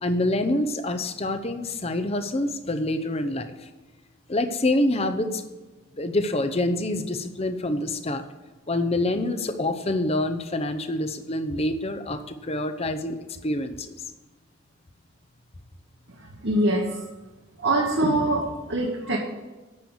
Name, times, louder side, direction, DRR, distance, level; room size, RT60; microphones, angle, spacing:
voice 1, 0.0-3.7 4.3-5.4 6.0-8.2 8.7-14.0, left 1 dB, 30° left, 8 dB, 0.7 m, -26 dB
voice 2, 16.2-17.0 17.6-19.2, right 1 dB, 60° right, -1 dB, 1.3 m, -24 dB
9.5 x 6.6 x 7.1 m, 1.2 s
head